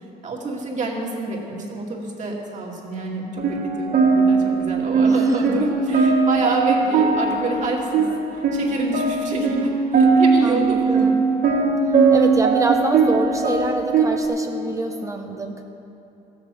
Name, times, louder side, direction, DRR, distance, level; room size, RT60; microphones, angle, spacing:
voice 1, 0.2-11.1, right 2 dB, 45° right, -2 dB, 2.3 m, -28 dB
sound 1, 3.4-14.2, right 4 dB, 65° right, 2.5 m, -19 dB
voice 2, 5.0-5.4 10.4-11.3 12.1-15.6, right 2 dB, 20° right, 4 dB, 0.8 m, -26 dB
15.0 x 7.0 x 7.5 m, 2.8 s
cardioid pair, 110°, 17 cm